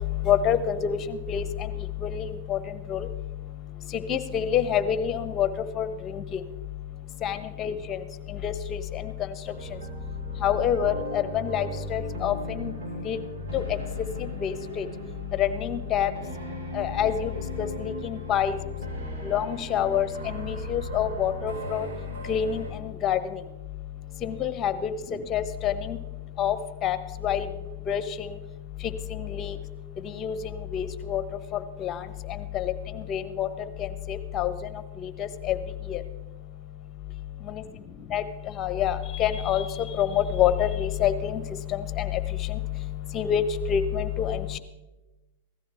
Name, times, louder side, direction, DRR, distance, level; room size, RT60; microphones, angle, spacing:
voice 1, 0.3-1.0 1.3-1.4 2.0-2.2 2.5-2.6 2.9-3.1 4.1-5.5 5.8-5.9 7.2-8.0 8.4-8.5 10.4-12.3 12.6-12.7 13.1-13.2 13.5-13.6 14.4-14.8 15.4-16.1 16.7-17.3 17.6-18.6 19.3-20.1 20.4-21.9 22.3-22.6 23.0-23.2 24.2-24.7 25.3-25.7 26.4-26.5 26.8-27.0 27.2-27.5 27.9-28.0 29.4-29.5 30.2-30.3 30.7-31.2 31.8-31.9 32.5-32.7 33.1-33.5 34.1-34.5 35.0-35.6 35.9-36.0 38.1-38.2 38.6-39.6 40.0-41.4 42.0-42.1 43.1-43.4 43.7-44.4, left 9 dB, 30° left, 12 dB, 1.1 m, -26 dB
sound 1, 9.4-22.7, right 1 dB, 65° right, 5.1 m, -38 dB
16.5 x 14.0 x 3.6 m, 1.1 s
hypercardioid pair, 115°, 0 cm